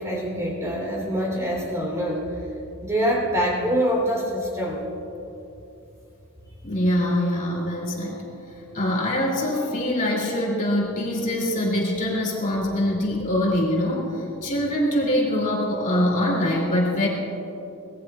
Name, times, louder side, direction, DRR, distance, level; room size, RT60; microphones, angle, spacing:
voice 1, 0.0-2.4 2.8-4.8, equal, 15° right, -3 dB, 3.4 m, -25 dB
voice 2, 6.6-8.3 8.7-17.1, left 1 dB, 40° left, -4 dB, 2.9 m, -24 dB
24.0 x 19.0 x 2.4 m, 2.8 s
head